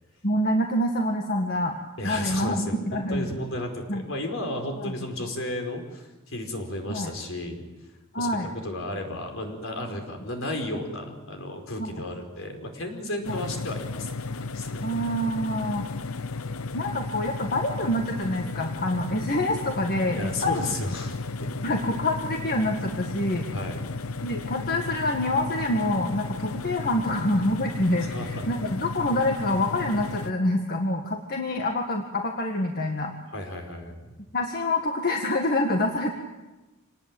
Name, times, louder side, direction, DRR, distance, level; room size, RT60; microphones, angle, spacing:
voice 1, 0.2-3.3 3.9-4.0 4.8-4.9 6.9-7.1 8.1-8.5 11.8-11.9 13.3-13.4 14.8-15.8 16.7-20.7 21.6-23.5 24.2-33.1 34.3-36.1, left 1 dB, 50° left, 3 dB, 1.9 m, -26 dB
voice 2, 2.0-7.6 8.2-8.3 8.6-14.8 20.1-21.7 23.5-23.8 28.0-28.5 33.3-34.1, left 1 dB, 70° left, 4 dB, 5.0 m, -33 dB
sound 1, 13.2-30.3, left 3 dB, 85° left, 0.8 m, -34 dB
26.5 x 19.0 x 9.0 m, 1.1 s
head